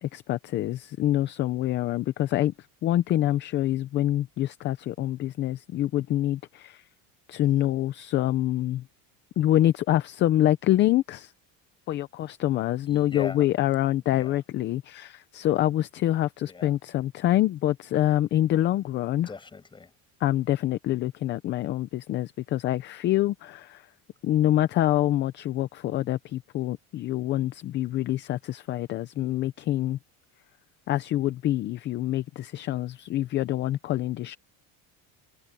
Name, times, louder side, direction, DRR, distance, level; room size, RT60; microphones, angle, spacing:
voice 1, 0.0-2.5 2.8-6.8 7.3-8.8 9.4-11.3 11.9-19.3 20.2-23.8 24.2-30.0 30.9-34.4, left 13 dB, 30° left, 0.5 m, -26 dB
voice 2, 12.9-13.5 14.1-14.4 16.4-16.7 19.3-19.9, left 4 dB, 10° left, 5.9 m, -40 dB
cardioid pair, 180°, 38 cm